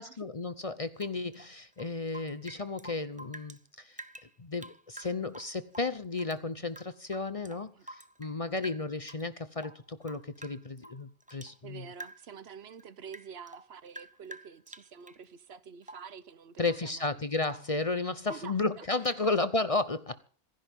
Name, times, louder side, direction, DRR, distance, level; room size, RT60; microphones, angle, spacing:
voice 1, 0.0-4.0 4.4-11.8 16.6-20.2, left 3 dB, 35° left, 0.8 m, -33 dB
Rain / Drip, 0.9-3.6 3.9-6.4 6.7-8.4 8.6-9.3 9.6-11.6 11.9-12.4 12.7-15.2 15.8-16.2 16.6-16.9 17.2-17.8 18.2-18.6 19.0-19.3, right 1 dB, 10° right, 0.5 m, -49 dB
voice 2, 11.6-17.2 18.3-19.4, right 6 dB, 65° right, 1.1 m, -48 dB
26.5 x 10.5 x 3.7 m
omnidirectional pair, 1.2 m